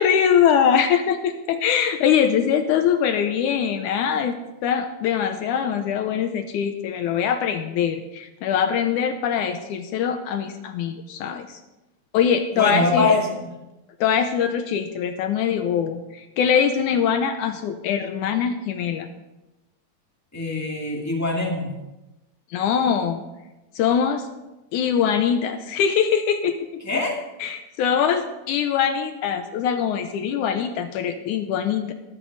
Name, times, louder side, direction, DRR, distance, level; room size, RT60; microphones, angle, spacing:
voice 1, 0.0-4.4 4.6-11.6 12.1-13.1 14.0-19.1 22.5-23.2 23.8-24.3 24.7-26.8 27.4-31.9, left 8 dB, 80° left, 7 dB, 1.8 m, -22 dB
voice 2, 12.5-13.4 20.3-21.8 26.8-27.2, left 3 dB, 20° left, -2 dB, 0.4 m, -23 dB
13.5 x 13.0 x 4.0 m, 1.0 s
omnidirectional pair, 4.3 m